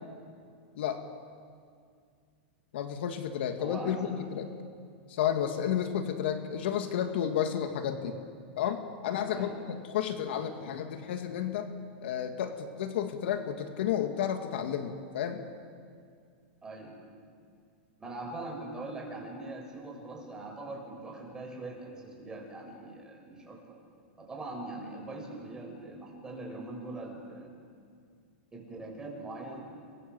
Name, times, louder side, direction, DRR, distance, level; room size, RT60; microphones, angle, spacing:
voice 1, 2.7-4.5 5.1-8.2 8.6-11.7 12.0-15.4, left 9 dB, 65° left, 5 dB, 2.4 m, -32 dB
voice 2, 3.6-4.1 9.3-9.6 16.6-17.0 18.0-23.8 24.2-27.5 28.5-29.6, right 2 dB, 10° right, -1 dB, 7.1 m, -42 dB
28.5 x 23.0 x 7.9 m, 2.2 s
supercardioid pair, 150°, 6 cm